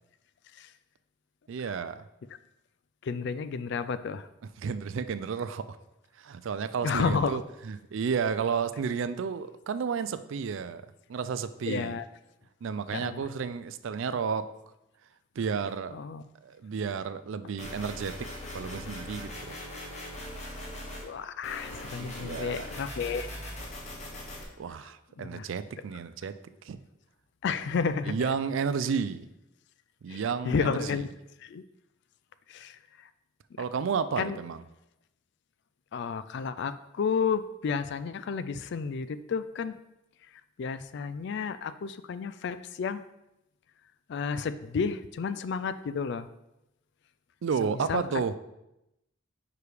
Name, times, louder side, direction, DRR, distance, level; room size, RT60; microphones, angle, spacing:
voice 1, 1.5-2.0 4.4-5.8 6.2-10.8 11.1-12.0 12.6-14.4 15.4-16.0 16.4-18.3 18.5-19.6 22.0-22.7 24.6-26.3 26.6-26.8 28.1-29.2 30.0-31.0 33.6-34.6 47.4-48.4, right 6 dB, 65° right, 12 dB, 0.3 m, -32 dB
voice 2, 3.0-4.3 6.8-7.4 11.7-12.0 12.9-13.2 15.9-16.2 21.0-23.3 25.2-25.4 27.4-28.3 30.1-31.1 31.4-31.6 32.5-32.8 34.2-34.4 35.9-39.8 40.6-43.0 44.1-46.3 47.6-48.0, left 5 dB, 55° left, 13 dB, 0.3 m, -31 dB
sound 1, 17.6-21.1 21.4-24.4, left 1 dB, 35° left, 1.1 m, -40 dB
4.9 x 4.8 x 4.8 m, 0.89 s
head